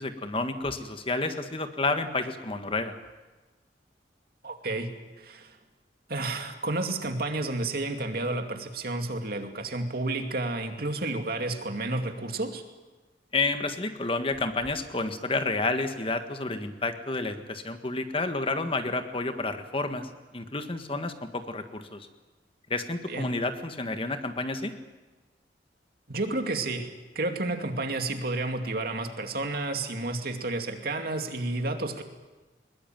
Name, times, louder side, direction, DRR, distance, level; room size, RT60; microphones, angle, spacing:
voice 1, 0.0-2.9 13.3-20.1 20.3-22.1 22.7-24.7, left 3 dB, 30° left, 7 dB, 1.6 m, -30 dB
voice 2, 4.4-5.6 6.1-12.6 23.1-23.3 26.1-32.0, right 2 dB, 60° right, 5 dB, 2.5 m, -31 dB
21.5 x 21.0 x 9.3 m, 1.2 s
head